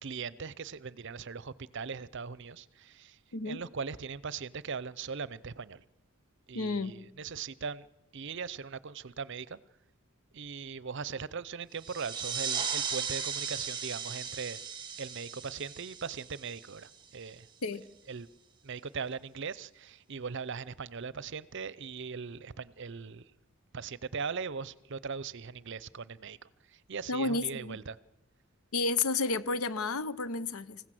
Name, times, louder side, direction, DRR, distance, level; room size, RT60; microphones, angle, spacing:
voice 1, 0.0-3.2 3.4-5.8 6.5-7.9 8.1-9.6 10.3-14.6 15.0-17.5 18.1-18.3 18.6-23.3 23.7-28.0, right 5 dB, 55° right, 0.6 m, -40 dB
voice 2, 3.3-3.6 6.5-7.0 17.6-17.9 27.1-27.8 28.7-30.8, left 3 dB, 80° left, 0.9 m, -31 dB
sound 1, 11.8-17.1, right 6 dB, 20° right, 1.6 m, -37 dB
26.0 x 15.5 x 7.7 m
head